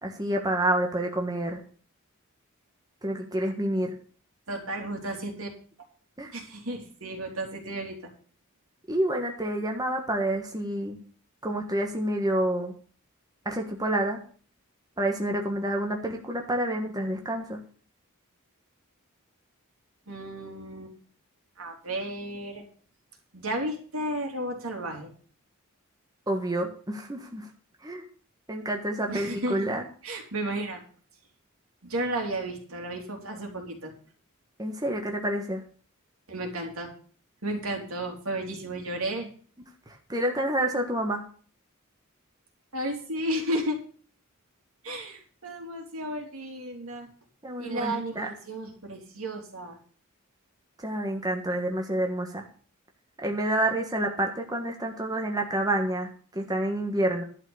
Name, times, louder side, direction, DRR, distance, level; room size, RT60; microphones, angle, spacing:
voice 1, 0.0-1.6 3.0-3.9 6.2-6.3 8.9-11.0 11.4-12.7 13.4-14.2 15.0-17.6 26.3-27.4 27.8-28.0 28.5-29.8 34.6-35.6 40.1-41.2 47.4-48.3 50.8-52.4 53.2-57.2, right 1 dB, 20° right, 2 dB, 1.5 m, -28 dB
voice 2, 4.5-5.5 6.3-8.1 20.1-20.9 21.6-22.6 23.3-25.1 29.1-29.7 30.0-30.8 31.8-33.9 36.3-36.9 37.4-39.3 42.7-43.8 44.8-47.1 47.6-49.8, right 1 dB, 85° right, 2 dB, 3.2 m, -33 dB
11.5 x 6.1 x 7.2 m, 0.43 s
head